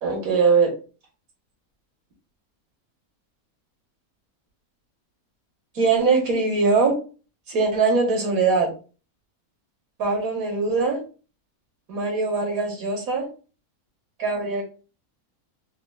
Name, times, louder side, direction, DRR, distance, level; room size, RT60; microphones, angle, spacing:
voice 1, 0.0-0.8 5.7-7.0 7.5-8.7 10.0-11.0 11.9-13.3 14.2-14.6, right 4 dB, 70° right, 1 dB, 1.6 m, -21 dB
5.4 x 2.0 x 2.3 m, 0.34 s
omnidirectional pair, 1.6 m